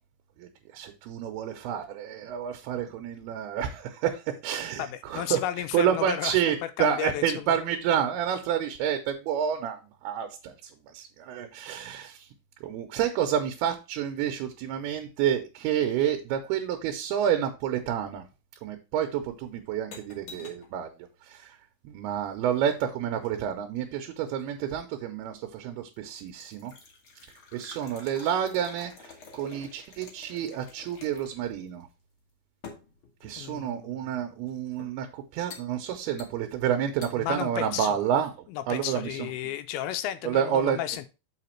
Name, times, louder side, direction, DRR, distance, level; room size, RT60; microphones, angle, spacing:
voice 1, 0.4-5.4 5.7-12.3 12.6-18.2 18.6-20.9 21.2-21.6 21.8-26.7 27.5-31.9 33.2-39.3 40.2-40.8, right 9 dB, 80° right, 6 dB, 2.7 m, -29 dB
voice 2, 4.8-6.4 6.8-7.5 33.4-34.2 37.2-38.0 38.5-41.1, left 12 dB, 80° left, 11 dB, 2.4 m, -33 dB
sound 1, 19.2-20.7 22.2-23.6 24.4-25.0 25.5-25.7 25.9-31.5 31.8-31.9 32.6-33.7 34.5-35.0 35.5-35.7 36.2-36.6 37.0-37.1, left 5 dB, 60° left, 1.3 m, -49 dB
6.9 x 5.0 x 4.3 m, 0.29 s
omnidirectional pair, 4.5 m